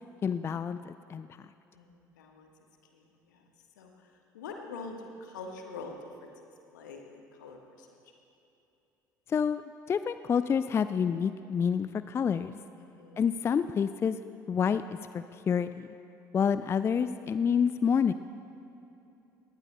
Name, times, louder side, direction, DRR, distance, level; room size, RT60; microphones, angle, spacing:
voice 1, 0.2-1.3 9.3-12.5 13.2-14.2 14.5-14.9 15.1-15.9 16.3-18.1, left 7 dB, 25° left, 13 dB, 0.3 m, -28 dB
voice 2, 1.7-2.5 2.9-3.4 3.8-3.9 4.3-6.3 6.7-8.0 12.8-13.3, left 4 dB, 70° left, 3 dB, 1.3 m, -45 dB
20.0 x 18.5 x 2.2 m, 2.9 s
figure-of-eight pair, 55°, 10 cm